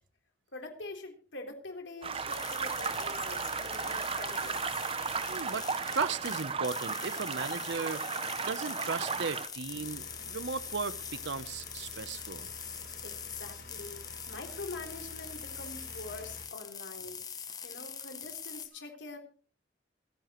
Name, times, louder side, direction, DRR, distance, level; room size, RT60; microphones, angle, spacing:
voice 1, 0.5-4.8 13.0-17.2 17.6-19.2, left 3 dB, 75° left, 3.6 m, -45 dB
sound 1, 2.0-9.5, right 5 dB, 30° right, 0.7 m, -35 dB
sound 2, 2.3-18.7, left 7 dB, 20° left, 1.1 m, -43 dB
voice 2, 5.3-5.7 5.9-8.2 8.4-12.5, right 5 dB, 75° right, 0.8 m, -36 dB
sound 3, 9.6-16.5, left 1 dB, 50° left, 2.9 m, -50 dB
26.5 x 10.0 x 3.1 m
head